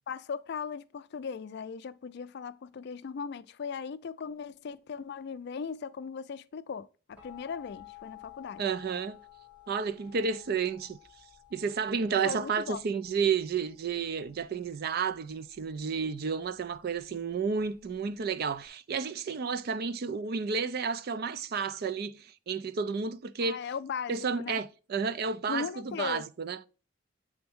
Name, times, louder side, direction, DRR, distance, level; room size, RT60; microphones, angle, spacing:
voice 1, 0.1-8.6 12.2-12.8 23.4-24.6 25.5-26.2, left 6 dB, 55° left, 0.4 m, -38 dB
sound 1, 7.2-18.7, left 14 dB, 5° right, 1.2 m, -54 dB
voice 2, 8.6-9.2 9.7-11.0 11.5-23.6 24.1-26.6, right 5 dB, 50° right, 0.4 m, -31 dB
7.8 x 3.5 x 3.4 m
head